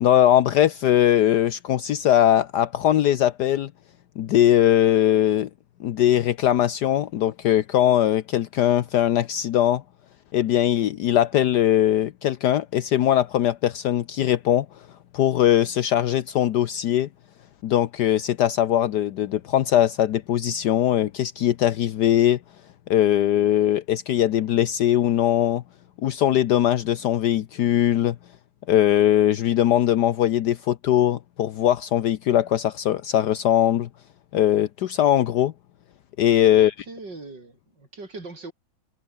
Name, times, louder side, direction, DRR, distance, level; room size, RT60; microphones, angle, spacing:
voice 1, 0.0-3.7 4.2-5.5 5.8-9.8 10.3-14.7 15.1-17.1 17.6-22.4 22.9-25.6 26.0-28.2 28.7-33.9 34.3-35.5 36.2-36.7, left 11 dB, 70° left, 1.4 m, -20 dB
voice 2, 36.5-38.5, right 3 dB, 70° right, 5.5 m, -40 dB
omnidirectional pair, 2.0 m